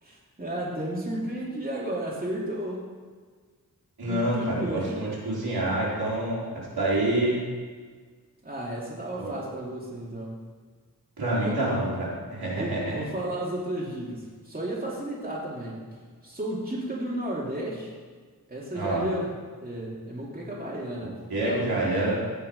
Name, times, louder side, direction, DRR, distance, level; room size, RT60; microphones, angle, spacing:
voice 1, 0.0-2.8 4.0-5.0 8.4-10.4 11.4-11.5 12.5-15.8 16.2-17.9 18.5-19.3 19.6-21.1 21.4-21.7, right 1 dB, 25° right, -5 dB, 2.8 m, -33 dB
voice 2, 4.0-6.4 6.7-7.4 9.2-9.4 11.2-12.9 18.7-19.1 21.3-22.2, right 1 dB, 75° right, -6 dB, 3.9 m, -27 dB
16.5 x 5.6 x 5.3 m, 1.5 s
wide cardioid pair, 75°, 38 cm